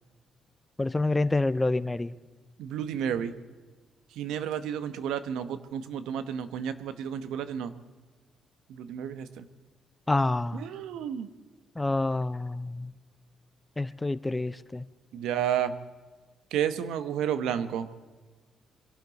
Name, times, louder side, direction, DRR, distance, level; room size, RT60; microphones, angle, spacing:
voice 1, 0.8-2.1 10.1-10.7 11.8-12.9 13.8-14.9, left 2 dB, 15° left, 16 dB, 0.5 m, -27 dB
voice 2, 2.6-3.3 4.2-7.7 8.7-9.5 10.5-11.3 15.1-15.8 16.5-17.9, right 9 dB, 85° right, 12 dB, 1.0 m, -31 dB
22.5 x 12.5 x 4.0 m, 1.3 s
cardioid pair, 90°, 0 cm